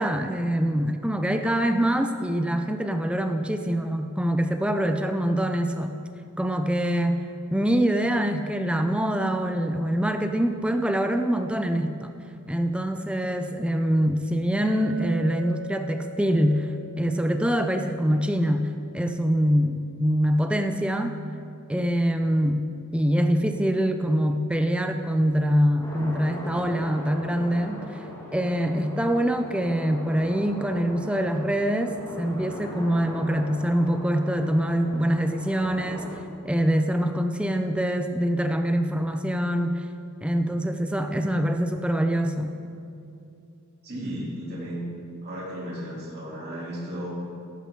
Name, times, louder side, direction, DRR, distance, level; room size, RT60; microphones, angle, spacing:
voice 1, 0.0-5.9 6.4-7.2 7.5-12.1 12.5-16.7 17.0-18.6 18.9-21.2 21.7-22.6 22.9-28.0 28.3-36.2 36.4-39.9 40.2-42.6, equal, 5° right, 6 dB, 0.5 m, -24 dB
Chink clink, 14.6-19.1, right 2 dB, 70° left, 3.1 m, -42 dB
sound 1, 25.8-36.1, left 1 dB, 15° left, 2.0 m, -40 dB
voice 2, 43.8-44.8 45.2-47.1, equal, 45° right, -7 dB, 3.0 m, -34 dB
13.5 x 12.0 x 3.8 m, 2.6 s
head